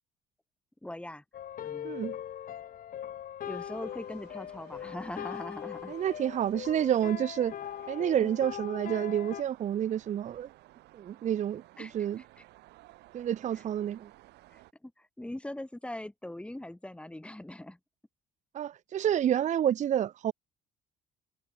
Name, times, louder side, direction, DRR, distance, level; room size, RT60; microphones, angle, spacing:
voice 1, 0.8-1.2 1.6-2.1 3.4-6.0 8.2-8.4 11.8-12.1 12.4-12.5 14.5-17.8, left 1 dB, 5° left, 6.6 m, -41 dB
sound 1, 1.3-9.4, left 10 dB, 55° left, 4.9 m, -41 dB
voice 2, 1.8-2.1 5.9-7.5 7.9-10.5 10.9-12.2 13.1-14.1 18.5-20.3, right 10 dB, 45° right, 0.7 m, -29 dB
sound 2, 3.4-14.7, right 18 dB, 85° right, 7.1 m, -57 dB
cardioid pair, 110°, 17 cm